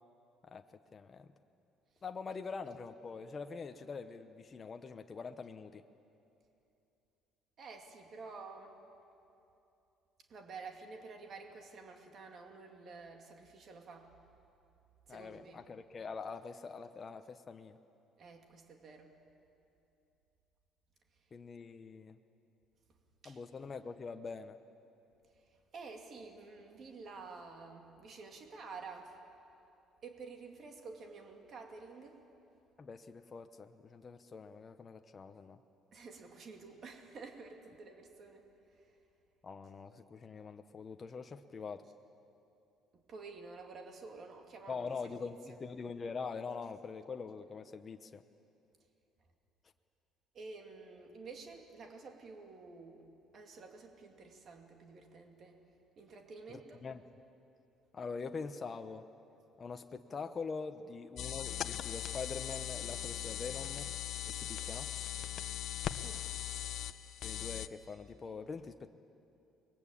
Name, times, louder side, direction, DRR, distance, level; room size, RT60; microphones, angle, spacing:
voice 1, 0.9-1.3 2.0-5.8 15.1-17.8 21.3-22.2 23.2-24.6 32.8-35.6 39.4-41.8 44.7-48.2 56.5-57.0 57.9-59.1 59.6-63.9 64.3-64.9 67.2-68.9, left 5 dB, 25° left, 6 dB, 0.9 m, -44 dB
voice 2, 7.6-8.8 10.3-14.1 15.1-15.6 18.2-19.2 23.2-23.4 25.4-29.2 30.0-32.2 35.9-38.5 38.7-38.9 42.9-44.9 50.3-55.6 56.0-56.8 66.0-66.3, right 4 dB, 40° right, 3 dB, 2.6 m, -50 dB
sound 1, 61.2-67.7, left 11 dB, 55° left, 0.8 m, -39 dB
29.5 x 21.5 x 8.5 m, 2.7 s
cardioid pair, 145°, 0 cm